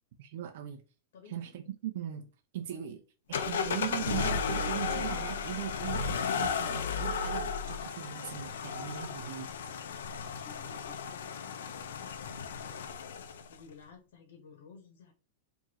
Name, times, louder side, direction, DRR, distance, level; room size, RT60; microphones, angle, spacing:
voice 1, 0.2-0.8 1.3-2.3 2.5-3.0 3.3-9.5, right 11 dB, 55° right, 0.6 m, -39 dB
voice 2, 1.1-1.6 2.7-3.0 10.1-12.9 13.4-15.1, left 5 dB, 70° left, 1.2 m, -55 dB
sound 1, 3.3-13.6, left 5 dB, 90° left, 0.5 m, -34 dB
4.6 x 2.7 x 2.9 m
supercardioid pair, 170°, 0 cm